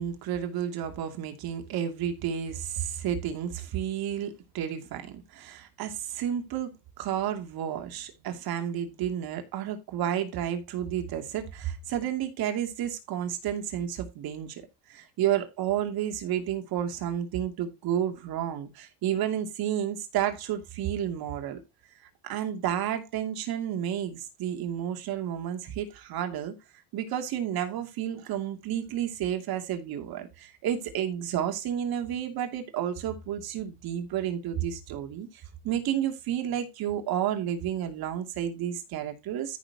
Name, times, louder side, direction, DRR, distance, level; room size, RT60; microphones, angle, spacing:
voice 1, 0.0-6.7 7.0-14.6 14.9-21.6 22.2-26.6 26.9-35.3 35.6-39.6, right 10 dB, 60° right, 2.7 m, -31 dB
14.0 x 6.5 x 2.9 m
cardioid pair, 130°, 40 cm